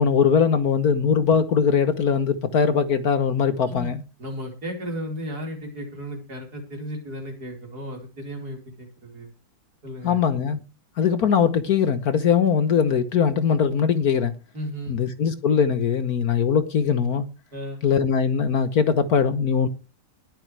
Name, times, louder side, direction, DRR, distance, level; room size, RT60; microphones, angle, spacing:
voice 1, 0.0-4.0 10.0-10.6 11.0-14.3 14.9-17.2 17.8-19.7, left 6 dB, 60° left, 1.5 m, -21 dB
voice 2, 4.2-9.3 9.8-10.2 14.5-15.0 17.5-17.8, equal, 55° right, 5.0 m, -34 dB
20.5 x 8.5 x 3.3 m
omnidirectional pair, 2.0 m